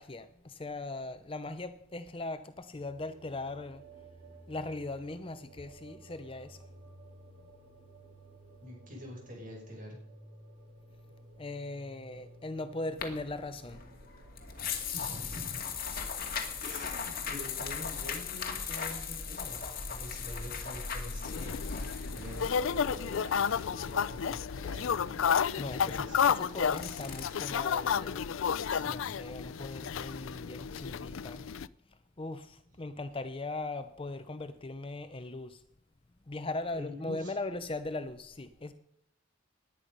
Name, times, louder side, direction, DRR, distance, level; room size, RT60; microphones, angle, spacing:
voice 1, 0.0-3.8 4.5-6.6 11.4-13.8 25.6-28.2 28.9-31.4 32.2-35.6 36.3-38.7, left 2 dB, 25° left, 0.6 m, -39 dB
sound 1, 2.8-18.8, right 2 dB, 75° right, 5.9 m, -56 dB
voice 2, 8.6-10.0 14.9-15.6 16.6-25.3 25.8-26.3 28.7-29.2 36.7-37.3, left 1 dB, 40° right, 5.8 m, -46 dB
sound 2, 13.0-27.3, left 6 dB, 45° left, 2.3 m, -39 dB
sound 3, 21.2-31.7, left 7 dB, 75° left, 0.4 m, -32 dB
19.0 x 10.0 x 5.4 m
head